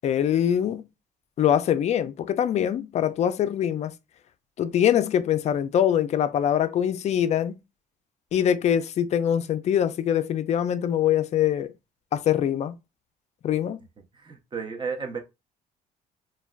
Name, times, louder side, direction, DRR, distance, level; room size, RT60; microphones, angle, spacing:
voice 1, 0.0-0.8 1.4-3.9 4.6-7.6 8.3-11.7 12.1-12.7 13.4-13.8, left 10 dB, 40° left, 0.4 m, -23 dB
voice 2, 14.1-15.2, right 5 dB, 30° right, 0.6 m, -33 dB
3.2 x 2.3 x 2.3 m
cardioid pair, 110°, 17 cm